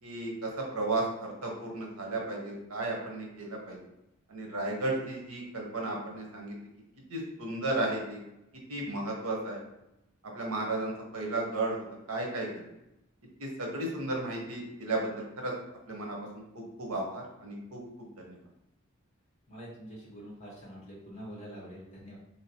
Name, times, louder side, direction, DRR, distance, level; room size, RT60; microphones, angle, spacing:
voice 1, 0.0-3.8 4.3-6.5 7.1-8.2 8.7-9.6 10.3-12.7 13.4-15.5 15.9-18.4, right 2 dB, 80° right, 0 dB, 0.9 m, -34 dB
voice 2, 19.5-22.2, equal, 30° left, -5 dB, 1.3 m, -45 dB
3.2 x 2.8 x 2.8 m, 0.88 s
head